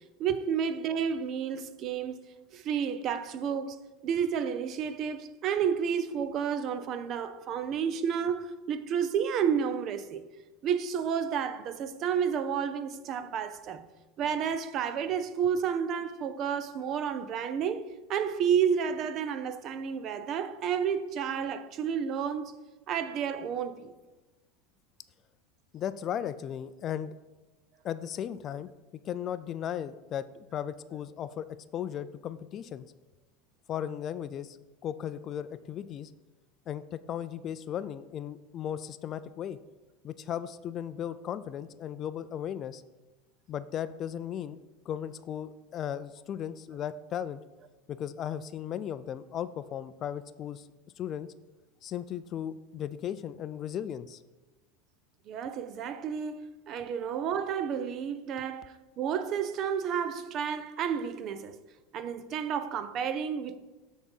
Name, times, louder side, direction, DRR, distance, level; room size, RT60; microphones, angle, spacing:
voice 1, 0.2-2.1 2.5-10.2 10.6-13.9 14.2-22.5 22.9-23.9 55.3-61.6 61.9-63.6, right 7 dB, 45° right, 0.6 m, -31 dB
voice 2, 25.7-27.1 27.8-28.7 29.0-31.5 31.7-32.9 33.7-34.6 34.8-36.1 36.7-39.6 40.0-42.8 43.5-44.6 44.9-47.4 47.9-50.6 51.0-51.3 51.8-54.2, left 9 dB, 35° left, 0.4 m, -36 dB
8.4 x 4.0 x 5.5 m
supercardioid pair, 125°, 0 cm